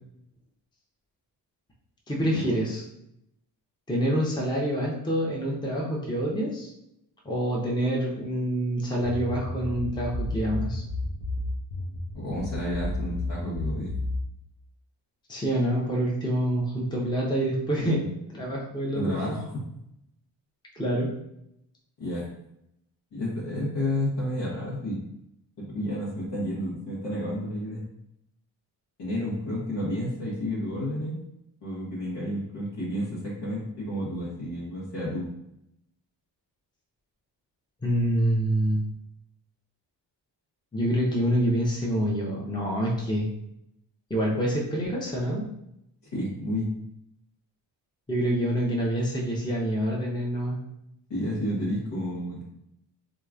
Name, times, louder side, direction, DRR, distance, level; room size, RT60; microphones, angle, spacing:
voice 1, 2.1-2.8 3.9-6.7 7.2-10.8 15.3-18.0 18.3-19.4 20.7-21.1 37.8-38.8 40.7-43.3 44.1-45.5 48.1-50.6, right 1 dB, 10° left, -3 dB, 0.7 m, -26 dB
sound 1, 9.0-14.3, left 2 dB, 80° left, 0.8 m, -32 dB
voice 2, 12.1-13.9 17.8-18.0 18.9-19.5 22.0-22.3 23.1-25.0 25.6-27.8 29.0-31.2 31.6-35.3 46.1-46.7 51.1-52.4, equal, 60° left, -8 dB, 1.1 m, -31 dB
2.9 x 2.4 x 2.4 m, 0.81 s
supercardioid pair, 45°, 48 cm